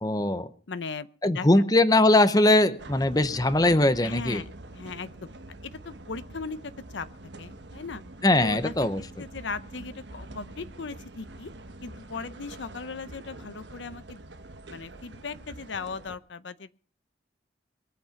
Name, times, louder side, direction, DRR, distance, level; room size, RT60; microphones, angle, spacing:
voice 1, 0.0-0.5 1.2-4.4 8.2-9.0, left 2 dB, 20° left, 12 dB, 0.7 m, -21 dB
voice 2, 0.7-1.1 1.3-1.5 4.0-5.1 5.6-7.1 7.4-8.0 8.4-11.5 11.8-14.2 14.7-16.7, left 4 dB, 75° left, 14 dB, 0.7 m, -38 dB
sound 1, 2.8-16.2, right 2 dB, 70° right, 1.2 m, -45 dB
22.5 x 8.3 x 5.8 m, 0.42 s
head